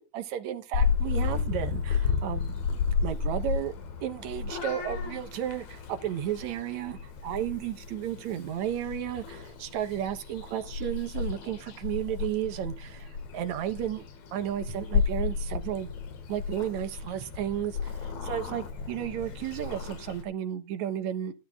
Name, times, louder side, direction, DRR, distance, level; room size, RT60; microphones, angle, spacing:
voice 1, 0.0-2.6 3.0-3.7 4.0-14.0 14.3-15.9 16.3-21.3, right 10 dB, 75° right, 2.3 m, -33 dB
Purr / Meow, 0.7-20.2, left 6 dB, 70° left, 3.0 m, -33 dB
12.0 x 11.5 x 3.5 m
omnidirectional pair, 3.4 m